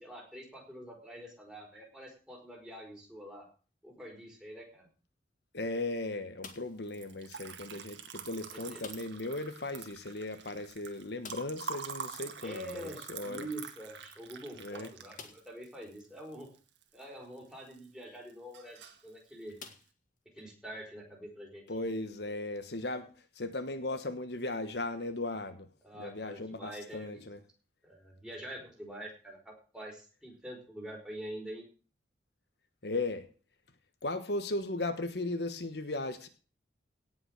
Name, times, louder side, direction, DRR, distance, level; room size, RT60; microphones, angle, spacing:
voice 1, 0.0-3.5 3.8-4.9 8.7-8.8 12.4-16.5 16.9-19.6 20.3-21.6 25.8-27.2 27.8-31.7, right 1 dB, 5° right, -1 dB, 4.9 m, -45 dB
voice 2, 5.5-13.5 14.5-14.9 21.7-27.4 32.8-33.3 34.0-36.3, left 2 dB, 60° left, 9 dB, 1.3 m, -37 dB
sound 1, 6.4-6.9 8.8-9.3 9.6-9.7 10.0-10.1 11.2-11.7 13.5-13.6 14.2-14.3 15.1-15.6 16.4-16.5 18.5-18.7 19.6-20.5, left 5 dB, 45° left, 2.0 m, -50 dB
Liquid, 6.8-17.0 17.4-18.0 18.3-19.1, right 6 dB, 75° right, 1.9 m, -45 dB
17.5 x 6.1 x 6.5 m, 0.38 s
head